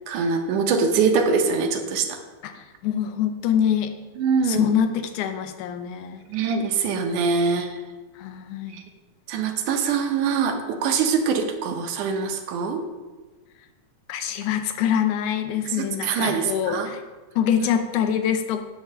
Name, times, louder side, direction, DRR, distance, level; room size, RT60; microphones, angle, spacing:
voice 1, 0.1-2.2 4.2-4.6 6.3-7.8 8.7-8.8 9.3-12.8 15.8-16.9, right 5 dB, 80° right, 5 dB, 2.2 m, -23 dB
voice 2, 2.4-3.9 4.4-6.2 8.2-8.8 14.1-17.0 17.4-18.6, left 9 dB, 80° left, 7 dB, 2.1 m, -25 dB
10.0 x 3.6 x 6.7 m, 1.3 s
omnidirectional pair, 3.6 m